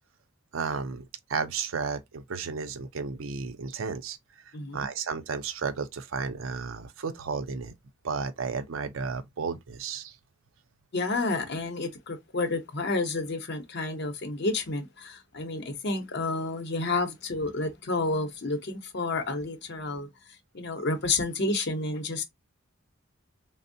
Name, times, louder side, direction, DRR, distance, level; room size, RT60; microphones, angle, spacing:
voice 1, 0.5-1.0 1.3-4.2 4.7-7.7 8.0-10.1, right 5 dB, 85° right, 0.5 m, -33 dB
voice 2, 4.5-4.9 10.9-20.1 20.5-22.2, left 3 dB, 60° left, 0.7 m, -30 dB
3.4 x 2.0 x 2.5 m
head